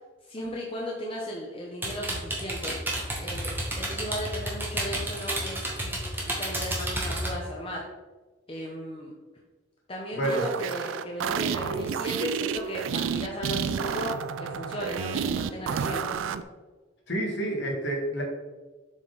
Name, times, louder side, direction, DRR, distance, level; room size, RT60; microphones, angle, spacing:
voice 1, 0.3-2.7 3.2-5.9 6.2-7.8 8.5-9.1 9.9-14.1 14.4-16.2, equal, 25° left, -2 dB, 0.7 m, -36 dB
sound 1, 1.8-7.3, right 1 dB, 10° right, 1.0 m, -31 dB
voice 2, 10.1-10.4 17.1-18.2, right 1 dB, 55° left, -1 dB, 1.6 m, -28 dB
sound 2, 10.2-16.4, right 7 dB, 75° right, 0.3 m, -30 dB
7.2 x 3.7 x 3.8 m, 1.3 s
head